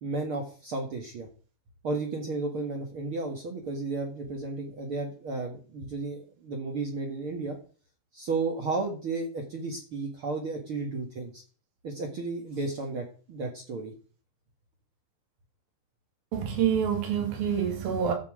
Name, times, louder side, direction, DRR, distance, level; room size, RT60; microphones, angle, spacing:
voice 1, 0.0-1.3 1.8-7.6 8.1-11.4 11.8-13.9, right 3 dB, 45° right, 2.0 m, -33 dB
voice 2, 16.3-18.1, right 8 dB, 75° right, 4.0 m, -27 dB
13.5 x 7.3 x 5.0 m
omnidirectional pair, 4.2 m